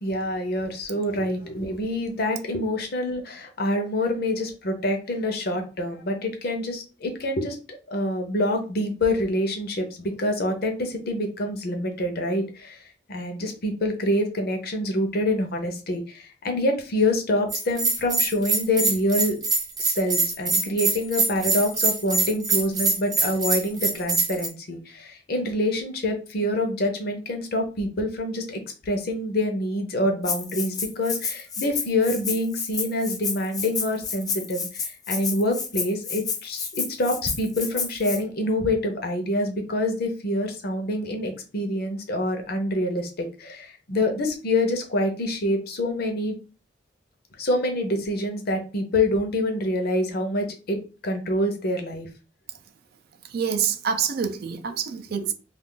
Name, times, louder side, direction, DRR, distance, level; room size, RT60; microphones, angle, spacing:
voice 1, 0.0-12.8 13.1-19.4 19.8-46.3 47.4-52.1 55.2-55.3, left 1 dB, 55° left, 0.7 m, -26 dB
Bell, 17.5-24.5, right 3 dB, 20° right, 0.7 m, -24 dB
Rattle (instrument), 30.2-38.2, left 5 dB, 20° left, 0.3 m, -30 dB
voice 2, 53.3-55.3, right 7 dB, 55° right, 0.4 m, -26 dB
2.4 x 2.3 x 3.7 m
head